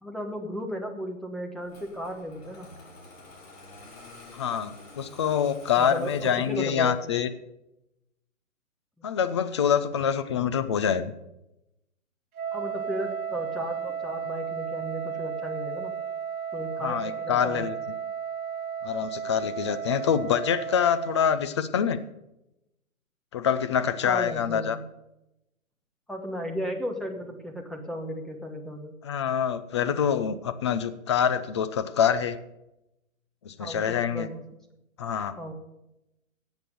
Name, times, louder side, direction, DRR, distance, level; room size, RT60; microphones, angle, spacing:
voice 1, 0.0-2.7 5.8-7.0 9.0-9.1 12.5-16.0 16.5-17.7 24.0-24.8 26.1-28.9 33.6-34.4 35.4-35.5, equal, ahead, 2 dB, 1.1 m, -35 dB
Engine starting, 1.7-7.1, left 2 dB, 50° left, 6.3 m, -49 dB
voice 2, 4.3-7.3 9.0-11.1 16.8-17.8 18.8-22.0 23.3-24.8 29.0-32.4 33.4-34.3 35.0-35.3, left 8 dB, 20° left, 11 dB, 0.5 m, -26 dB
Wind instrument woodwind instrument, 12.3-21.2, right 8 dB, 25° right, 3.6 m, -34 dB
14.0 x 8.3 x 6.8 m, 0.89 s
hypercardioid pair, 140°, 42 cm